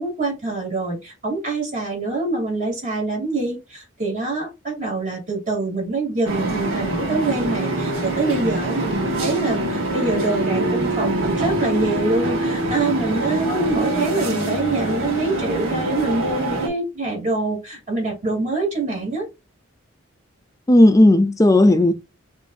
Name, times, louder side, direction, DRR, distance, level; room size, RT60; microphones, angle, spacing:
voice 1, 0.0-19.3, right 3 dB, 35° right, 2.3 m, -25 dB
sound 1, 6.2-16.7, right 1 dB, 80° right, 1.1 m, -24 dB
voice 2, 20.7-21.9, left 1 dB, 15° left, 0.4 m, -14 dB
5.6 x 2.6 x 2.4 m
head